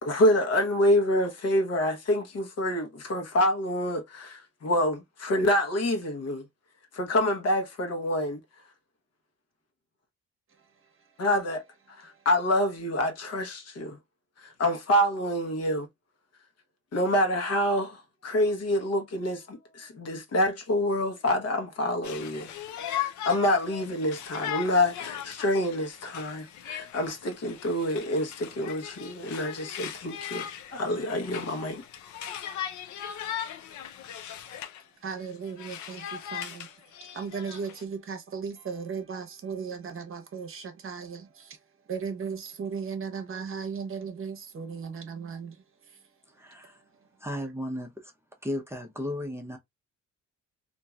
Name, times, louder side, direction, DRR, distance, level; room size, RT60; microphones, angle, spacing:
voice 1, 0.0-6.4 6.9-8.4 11.2-11.6 11.9-14.0 14.4-15.9 16.9-22.5 22.8-30.4 30.7-31.8, left 1 dB, 55° left, 1.0 m, -27 dB
Conversation, 22.0-34.8 35.2-37.8, left 10 dB, 70° left, 0.5 m, -38 dB
voice 2, 35.0-36.7 37.1-41.5 41.9-45.5, right 6 dB, 45° right, 0.8 m, -36 dB
voice 3, 46.3-46.8 47.2-48.1 48.4-49.6, left 1 dB, 10° right, 0.6 m, -35 dB
2.9 x 2.6 x 2.3 m
cardioid pair, 90°, 30 cm